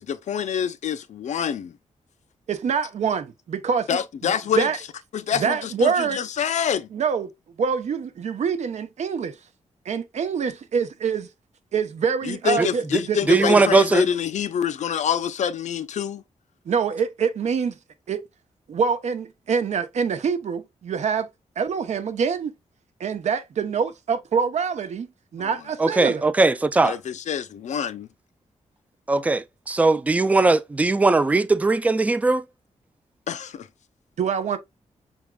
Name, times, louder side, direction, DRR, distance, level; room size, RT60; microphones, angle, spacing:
voice 1, 0.0-1.8 3.9-4.7 5.1-6.9 12.2-16.2 25.4-25.5 26.8-28.1 33.3-33.7, left 8 dB, 70° left, 0.5 m, -26 dB
voice 2, 2.5-3.9 4.2-4.8 5.4-6.2 6.9-7.3 7.6-9.4 9.9-11.3 11.7-12.8 13.1-13.6 16.7-17.8 18.1-18.2 18.7-21.3 21.6-22.5 23.0-26.2 34.2-34.6, right 6 dB, 65° right, 0.8 m, -25 dB
voice 3, 12.6-13.0 13.3-14.1 25.8-27.0 29.1-32.4, right 3 dB, 10° right, 0.3 m, -19 dB
6.0 x 3.6 x 2.3 m
wide cardioid pair, 175°, 13 cm